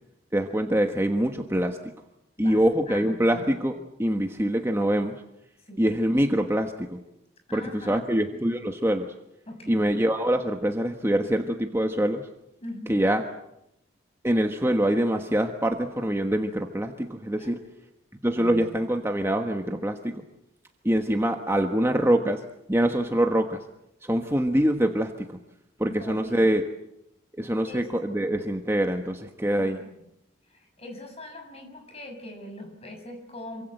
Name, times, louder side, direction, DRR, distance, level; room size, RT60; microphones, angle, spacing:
voice 1, 0.3-1.8 2.4-5.2 5.8-7.0 7.5-9.1 9.7-12.3 12.9-13.2 14.2-17.6 18.2-20.2 20.8-22.4 22.7-23.6 24.0-25.4 25.8-26.6 27.4-29.8, right 1 dB, 10° right, 4 dB, 1.3 m, -24 dB
voice 2, 2.4-3.4 5.7-5.9 7.5-8.0 9.5-9.9 12.6-13.0 17.4-17.7 18.3-18.7 25.9-26.4 27.7-27.9 29.6-30.0 30.5-33.6, left 1 dB, 30° left, 4 dB, 6.6 m, -42 dB
27.5 x 24.5 x 7.9 m, 0.84 s
head